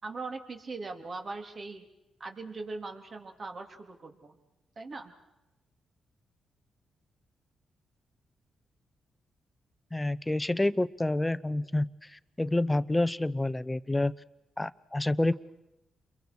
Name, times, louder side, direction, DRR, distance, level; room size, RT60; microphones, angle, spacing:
voice 1, 0.0-1.9 2.2-4.4 4.7-5.1, right 3 dB, 45° right, 4 dB, 3.5 m, -40 dB
voice 2, 9.9-14.1 14.6-15.3, left 2 dB, 15° left, 16 dB, 0.9 m, -28 dB
29.5 x 22.5 x 6.4 m, 0.95 s
supercardioid pair, 60°, 0 cm